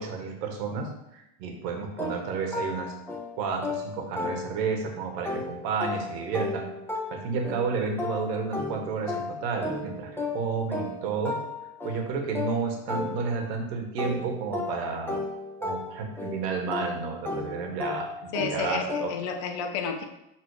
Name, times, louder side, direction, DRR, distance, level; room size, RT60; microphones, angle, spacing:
voice 1, 0.0-2.9 3.4-6.7 7.1-11.4 11.8-15.2 15.6-19.1, right 5 dB, 80° right, 3 dB, 1.7 m, -31 dB
sound 1, 2.0-4.9 5.3-13.6 14.0-19.4, left 3 dB, 5° left, 1.2 m, -34 dB
voice 2, 18.3-20.0, left 5 dB, 60° left, 4 dB, 1.2 m, -31 dB
6.6 x 3.9 x 4.9 m, 0.88 s
supercardioid pair, 110°, 49 cm